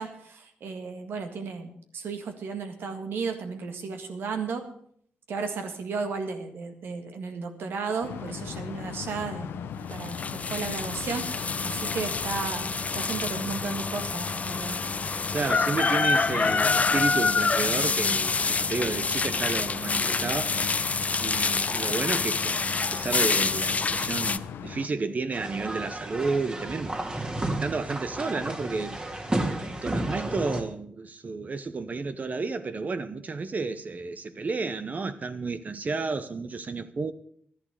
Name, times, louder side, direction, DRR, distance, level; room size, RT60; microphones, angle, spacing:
voice 1, 0.0-4.6 5.3-9.5 9.9-11.2 11.6-14.8, right 5 dB, 75° right, 1.9 m, -34 dB
sound 1, 8.0-24.9, left 7 dB, 85° left, 1.0 m, -39 dB
sound 2, 9.9-24.4, left 4 dB, 40° left, 0.6 m, -27 dB
voice 2, 15.3-20.5 21.2-27.3 27.6-29.0 29.8-37.1, right 4 dB, 45° right, 0.9 m, -31 dB
sound 3, 25.3-30.6, right 1 dB, 25° right, 2.3 m, -32 dB
11.5 x 10.5 x 6.5 m
cardioid pair, 60°, 4 cm